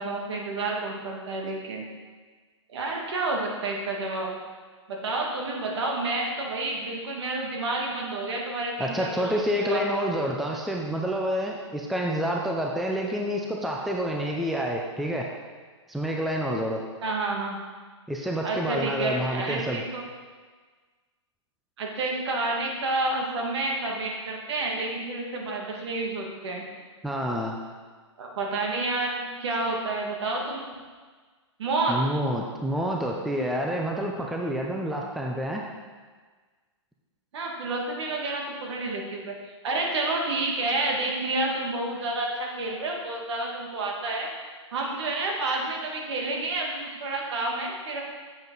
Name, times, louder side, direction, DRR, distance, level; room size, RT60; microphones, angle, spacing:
voice 1, 0.0-1.8 2.7-4.4 4.9-9.8 17.0-17.6 18.4-20.0 21.8-26.6 28.2-30.7 31.6-32.0 37.3-39.3 39.6-44.3 44.7-48.0, right 2 dB, 60° right, 0 dB, 2.0 m, -29 dB
voice 2, 8.8-15.3 15.9-16.8 18.1-19.8 27.0-27.6 31.9-35.6, equal, ahead, -1 dB, 0.5 m, -28 dB
7.7 x 7.3 x 4.0 m, 1.5 s
hypercardioid pair, 135°, 16 cm